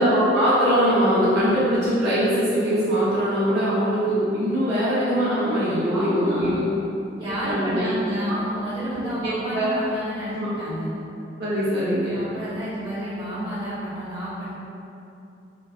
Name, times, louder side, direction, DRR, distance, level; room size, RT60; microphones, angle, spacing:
voice 1, 0.0-6.7 7.5-7.9 9.0-9.7 10.3-10.5 11.4-12.3, equal, 60° right, -11 dB, 0.7 m, -22 dB
voice 2, 5.9-6.7 7.2-11.0 12.1-14.5, equal, 30° right, -12 dB, 0.9 m, -30 dB
3.0 x 2.3 x 2.3 m, 2.7 s
head